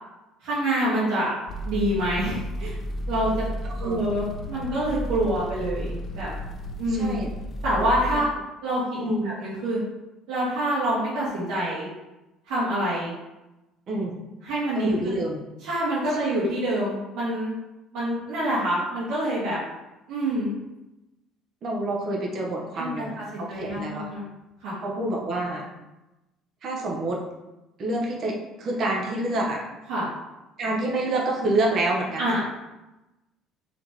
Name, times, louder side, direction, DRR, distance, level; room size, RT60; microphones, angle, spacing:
voice 1, 0.4-1.3 1.6-2.8 3.1-3.4 3.8-6.3 6.8-7.2 7.6-8.3 8.6-9.0 9.2-9.8 10.3-11.9 12.5-13.1 14.4-15.2 15.6-17.5 17.9-19.6 20.1-20.5 22.7-24.2 24.6-24.8 29.9-30.1 32.2-32.4, right 1 dB, 80° right, -9 dB, 1.4 m, -26 dB
sound 1, 1.5-8.1, equal, 35° left, 0.3 m, -33 dB
voice 2, 3.6-4.0 6.9-7.3 8.1-8.2 9.0-9.3 13.9-14.2 14.7-15.4 21.6-24.1 24.8-25.7 26.6-27.2 27.8-29.6 30.6-32.4, right 2 dB, 40° right, -1 dB, 0.9 m, -27 dB
4.0 x 2.9 x 3.5 m, 0.99 s
cardioid pair, 155°, 0 cm